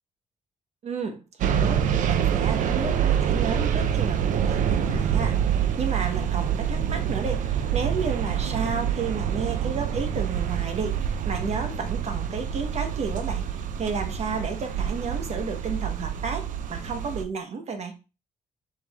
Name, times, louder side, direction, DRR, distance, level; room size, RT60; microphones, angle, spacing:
voice 1, 0.8-17.9, right 5 dB, 55° right, 5 dB, 1.0 m, -32 dB
sound 1, 1.4-17.3, right 8 dB, 75° right, 0.5 m, -26 dB
4.7 x 3.3 x 3.4 m, 0.30 s
cardioid pair, 95°, 13 cm